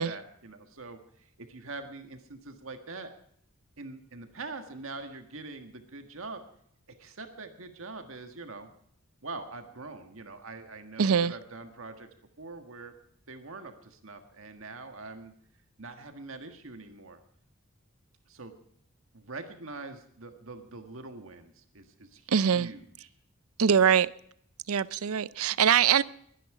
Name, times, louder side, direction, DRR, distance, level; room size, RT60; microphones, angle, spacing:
voice 1, 0.0-3.1 3.8-6.4 7.0-8.7 9.2-12.1 12.4-12.9 13.3-15.3 15.8-17.2 18.3-18.5 19.1-23.1, right 3 dB, 75° right, 1.6 m, -43 dB
voice 2, 11.0-11.3 22.3-22.7 23.6-24.1 24.7-26.0, right 7 dB, 90° right, 0.5 m, -23 dB
22.5 x 10.5 x 4.9 m
head